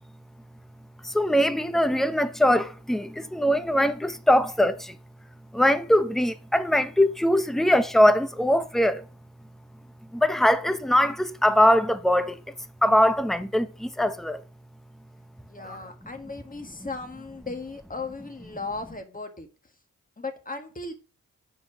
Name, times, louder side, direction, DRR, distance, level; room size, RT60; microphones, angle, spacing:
voice 1, 1.0-4.9 5.5-9.0 10.1-12.4 12.8-14.4, equal, ahead, 0.8 m, -22 dB
voice 2, 15.5-19.5 20.2-20.9, left 3 dB, 25° left, 1.8 m, -36 dB
6.0 x 4.7 x 6.0 m
cardioid pair, 50°, 35 cm